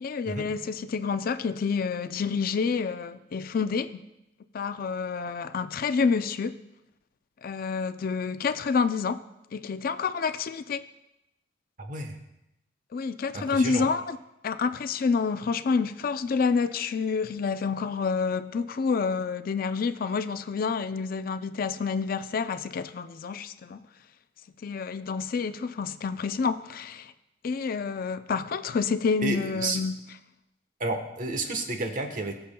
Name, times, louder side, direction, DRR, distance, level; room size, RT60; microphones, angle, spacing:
voice 1, 0.0-4.1 4.5-6.5 7.4-9.2 9.5-10.8 12.9-14.2 14.4-23.8 24.6-27.1 27.4-30.0, left 5 dB, 55° left, 0.4 m, -28 dB
voice 2, 11.8-12.2 13.3-13.9 29.2-29.8 30.8-32.3, right 2 dB, 50° right, 1.0 m, -31 dB
20.0 x 6.8 x 2.2 m
head